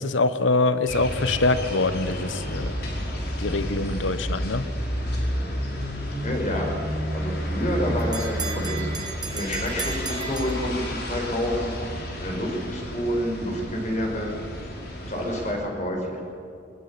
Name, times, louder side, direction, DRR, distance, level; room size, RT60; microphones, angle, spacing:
voice 1, 0.0-2.8 3.4-4.7, left 3 dB, 85° left, 13 dB, 1.1 m, -24 dB
sound 1, 0.9-15.5, equal, 55° left, 5.3 m, -31 dB
voice 2, 6.2-6.7 7.1-8.9 9.3-11.7 12.2-14.3 15.1-16.2, equal, 40° left, 1 dB, 5.3 m, -28 dB
Bell, 7.2-11.3, right 6 dB, 20° right, 1.8 m, -36 dB
21.5 x 21.0 x 8.7 m, 2.7 s
head